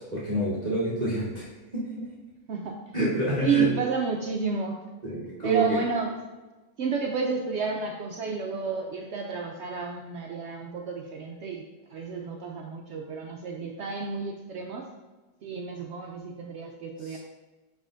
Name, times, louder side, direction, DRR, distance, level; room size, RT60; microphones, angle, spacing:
voice 1, 0.0-2.1 2.9-3.7 5.0-5.8 17.1-17.2, right 1 dB, 25° right, -9 dB, 1.3 m, -28 dB
voice 2, 2.5-2.8 3.4-4.8 5.4-6.2 6.8-14.9 15.4-17.2, right 5 dB, 80° right, 1 dB, 0.6 m, -31 dB
7.3 x 5.7 x 2.5 m, 1.2 s
omnidirectional pair, 1.8 m